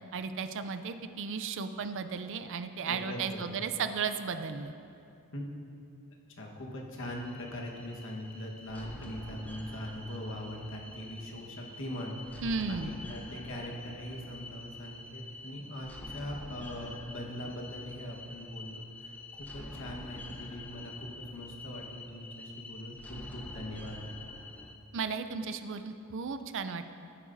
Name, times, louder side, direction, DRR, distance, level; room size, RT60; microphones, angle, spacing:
voice 1, 0.1-4.7 12.4-12.9 24.9-26.8, right 5 dB, 60° right, 9 dB, 0.5 m, -34 dB
voice 2, 2.9-3.6 5.3-5.4 6.4-24.0, left 1 dB, 65° left, -1 dB, 1.4 m, -41 dB
sound 1, 7.0-24.8, left 2 dB, 5° left, 0.7 m, -47 dB
14.0 x 9.9 x 2.7 m, 2.6 s
head